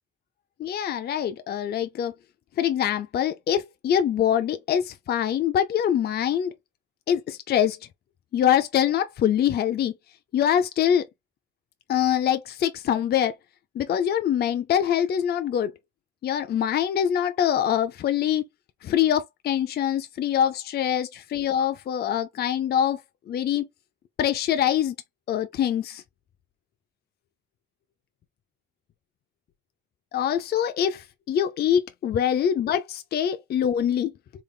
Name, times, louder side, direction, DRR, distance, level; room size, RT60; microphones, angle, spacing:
voice 1, 0.6-2.1 2.6-6.5 7.1-7.8 8.3-9.9 10.3-11.0 11.9-13.3 13.8-15.7 16.2-18.4 18.8-23.0 23.3-23.7 24.2-24.9 25.3-26.0 30.1-34.1, left 9 dB, 55° left, 0.5 m, -24 dB
3.6 x 3.4 x 2.3 m
cardioid pair, 90°, 20 cm